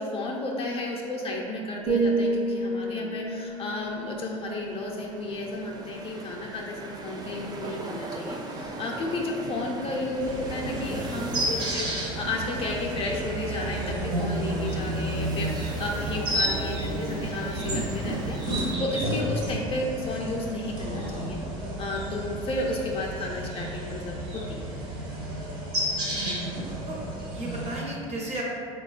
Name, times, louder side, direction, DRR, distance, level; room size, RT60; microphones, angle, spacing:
voice 1, 0.0-24.7, left 2 dB, 35° left, -1 dB, 0.4 m, -33 dB
sound 1, 0.7-18.8, right 2 dB, 25° right, 0.4 m, -40 dB
sound 2, 1.9-5.8 6.2-6.5, right 2 dB, 80° right, 0.5 m, -30 dB
sound 3, 10.2-27.8, right 1 dB, 60° right, 1.2 m, -31 dB
voice 2, 25.9-26.4 26.9-27.0 27.3-28.4, right 2 dB, 40° right, -3 dB, 0.8 m, -34 dB
3.8 x 2.2 x 2.4 m, 2.2 s
hypercardioid pair, 75°, 17 cm